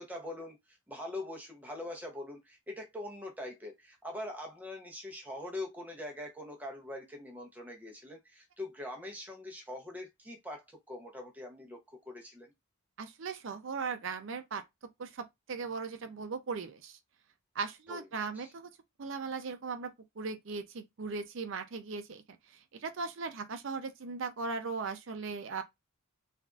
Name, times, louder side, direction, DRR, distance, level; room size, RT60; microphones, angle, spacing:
voice 1, 0.0-11.8 12.0-12.5 17.9-18.1 18.3-18.5, left 1 dB, 10° right, 0.7 m, -43 dB
voice 2, 13.0-14.6 15.0-17.0 17.6-18.7 19.0-22.2 22.8-25.6, right 4 dB, 60° right, 0.5 m, -38 dB
3.4 x 2.5 x 2.4 m
head